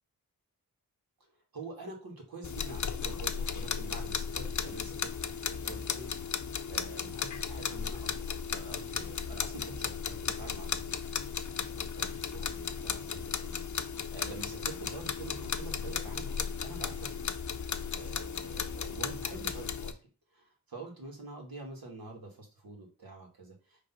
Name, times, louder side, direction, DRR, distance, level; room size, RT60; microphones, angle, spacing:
voice 1, 1.5-6.1 6.7-11.0 11.7-13.6 13.9-17.3 17.9-20.0 20.3-23.8, right 3 dB, 80° right, 0 dB, 2.4 m, -46 dB
sound 1, 2.4-19.9, left 6 dB, 55° left, 0.6 m, -35 dB
5.3 x 3.3 x 5.6 m, 0.32 s
wide cardioid pair, 85°, 35 cm